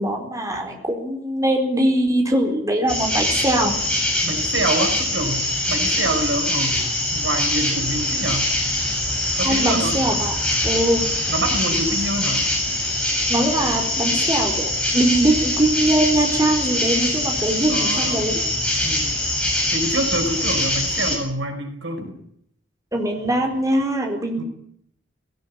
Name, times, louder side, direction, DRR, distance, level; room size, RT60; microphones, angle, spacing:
voice 1, 0.0-3.7 9.4-10.4 10.6-11.0 13.3-18.4 22.9-24.4, right 1 dB, 15° right, 2 dB, 4.3 m, -21 dB
sound 1, 2.9-21.2, left 1 dB, 5° left, 6.8 m, -23 dB
voice 2, 4.2-8.5 9.4-10.0 11.3-12.5 17.7-18.2 18.8-19.2 19.7-22.2 24.4-24.5, right 1 dB, 70° right, 5 dB, 5.2 m, -26 dB
19.5 x 18.5 x 8.7 m, 0.71 s
head